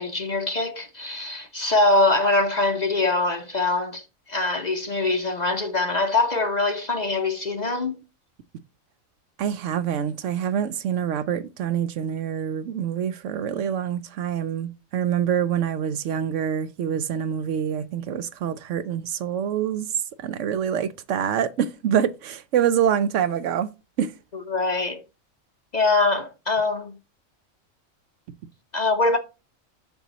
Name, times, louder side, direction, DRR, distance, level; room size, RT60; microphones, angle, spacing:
voice 1, 0.0-8.0 24.5-25.0 25.7-26.9 28.7-29.2, left 2 dB, 40° left, 0.7 m, -23 dB
voice 2, 9.4-19.9 20.2-23.7 24.0-24.1, right 9 dB, 70° right, 0.9 m, -26 dB
7.0 x 6.0 x 4.0 m
omnidirectional pair, 1.4 m